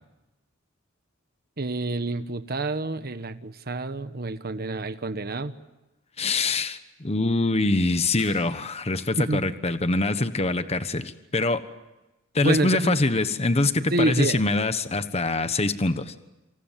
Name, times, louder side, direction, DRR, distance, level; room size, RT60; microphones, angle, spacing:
voice 1, 1.6-5.5 9.2-9.4 12.4-13.0 13.9-14.4, right 2 dB, 50° right, 10 dB, 1.3 m, -27 dB
voice 2, 6.2-11.6 12.3-16.1, left 2 dB, 30° left, 11 dB, 1.2 m, -24 dB
sound 1, 8.2-9.3, left 5 dB, 65° left, 7.8 m, -50 dB
27.5 x 26.5 x 7.5 m, 1.0 s
head